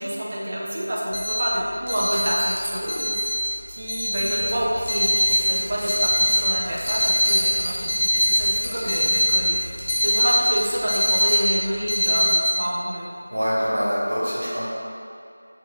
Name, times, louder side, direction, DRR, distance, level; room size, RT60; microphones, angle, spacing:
voice 1, 0.0-3.1 3.7-9.6 10.0-13.1, equal, 30° right, -4 dB, 0.4 m, -27 dB
sound 1, 1.1-12.3, equal, 35° left, 0.8 m, -22 dB
sound 2, 1.2-1.3 1.9-3.6 3.9-4.2 4.5-5.9 6.3-9.0 9.4-9.5 9.8-11.7 13.4-13.5, equal, 70° left, 0.7 m, -34 dB
sound 3, 4.2-10.3, equal, 10° right, 0.9 m, -38 dB
voice 2, 13.3-14.7, equal, 55° right, -7 dB, 0.8 m, -24 dB
3.6 x 2.9 x 2.2 m, 2.4 s
figure-of-eight pair, 170°, 0 cm